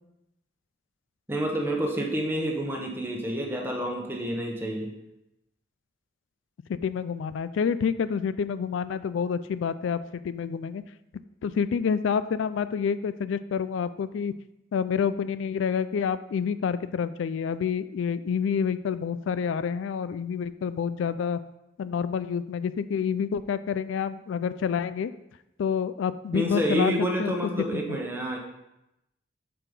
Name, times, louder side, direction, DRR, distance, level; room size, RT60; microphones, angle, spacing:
voice 1, 1.3-4.9 26.3-28.4, equal, 10° right, 0 dB, 1.0 m, -28 dB
voice 2, 6.7-10.8 11.4-14.3 14.7-21.4 21.8-25.1 25.6-26.9 27.2-27.3 27.7-28.0, left 6 dB, 80° left, 14 dB, 0.3 m, -28 dB
7.5 x 4.6 x 5.2 m, 0.90 s
head